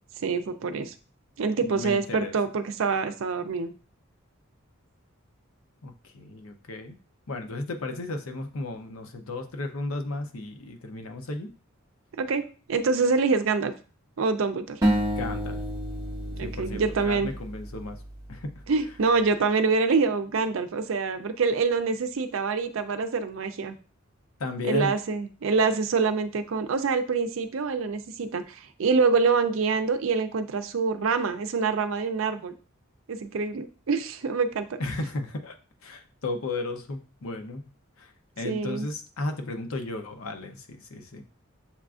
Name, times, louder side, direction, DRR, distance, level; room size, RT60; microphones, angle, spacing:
voice 1, 0.2-0.9 1.4-3.7 12.2-13.7 14.2-14.8 16.4-17.3 18.7-23.8 24.6-32.5 33.1-34.7 38.4-38.9, right 4 dB, 70° right, 9 dB, 0.5 m, -26 dB
voice 2, 1.6-2.3 5.8-7.0 7.3-11.5 15.2-15.6 16.4-18.0 18.3-18.5 24.4-24.9 34.8-35.5 35.8-37.6 38.0-38.1 38.4-41.4, left 2 dB, 80° left, 6 dB, 0.6 m, -34 dB
sound 1, 14.8-18.0, equal, 20° right, 1.0 m, -29 dB
7.1 x 2.4 x 2.4 m, 0.37 s
head